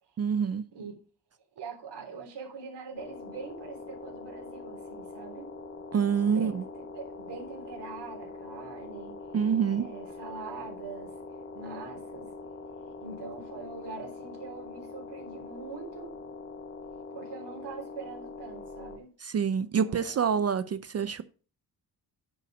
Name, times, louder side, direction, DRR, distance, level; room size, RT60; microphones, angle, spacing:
voice 1, 0.2-0.6 5.9-6.6 9.3-9.9 19.2-21.2, right 7 dB, 40° right, 0.4 m, -27 dB
voice 2, 1.6-5.5 6.2-6.6 6.9-9.2 9.6-11.1 11.5-12.3 13.0-16.1 17.1-19.1 19.8-20.3, right 4 dB, 80° right, 3.6 m, -43 dB
sound 1, 3.0-19.0, left 3 dB, 30° left, 1.2 m, -43 dB
10.0 x 5.6 x 5.2 m
wide cardioid pair, 165°, 41 cm